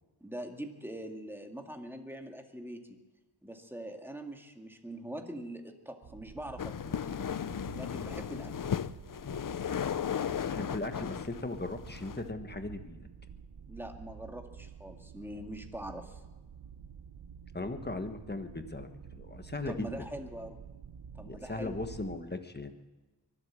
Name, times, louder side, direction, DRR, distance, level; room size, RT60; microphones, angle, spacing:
voice 1, 0.2-3.0 3.4-6.9 7.8-8.7 13.7-16.2 19.7-20.6 21.1-21.8, right 1 dB, 5° right, 4 dB, 2.0 m, -43 dB
sound 1, 6.0-22.2, right 7 dB, 60° right, 0.8 m, -49 dB
sound 2, 6.6-12.3, left 8 dB, 50° left, 0.6 m, -35 dB
voice 2, 10.5-13.1 17.5-19.9 21.2-22.7, left 2 dB, 25° left, 7 dB, 1.5 m, -38 dB
23.5 x 8.2 x 7.5 m, 1.2 s
wide cardioid pair, 70°, 43 cm